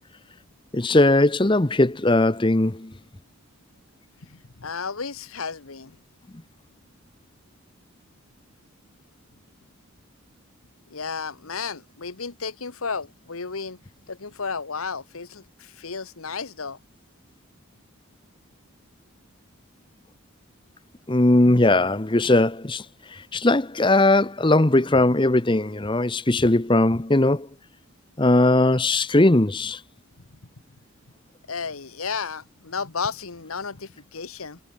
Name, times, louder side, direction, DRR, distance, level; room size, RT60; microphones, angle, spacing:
voice 1, 0.7-2.9 21.1-22.8 23.1-27.5 28.2-29.8, left 2 dB, 20° left, 0.8 m, -19 dB
voice 2, 4.2-6.0 10.9-13.8 14.1-16.8 31.5-34.6, left 5 dB, 80° left, 1.3 m, -33 dB
head